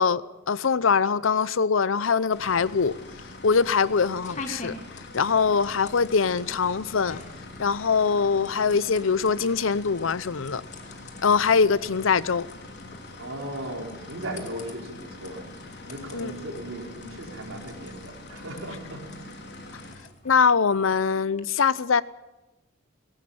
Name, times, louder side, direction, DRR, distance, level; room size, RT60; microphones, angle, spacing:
voice 1, 0.0-2.9 3.4-4.7 5.1-7.2 7.6-10.6 11.2-12.5 16.1-16.3 20.2-22.0, left 5 dB, 90° left, 0.7 m, -23 dB
sound 1, 1.9-21.4, left 3 dB, 40° left, 2.5 m, -48 dB
sound 2, 2.3-19.9, left 2 dB, 60° left, 4.1 m, -44 dB
voice 2, 13.2-15.5 15.8-19.2, right 1 dB, 85° right, 4.3 m, -37 dB
19.0 x 17.5 x 8.7 m
head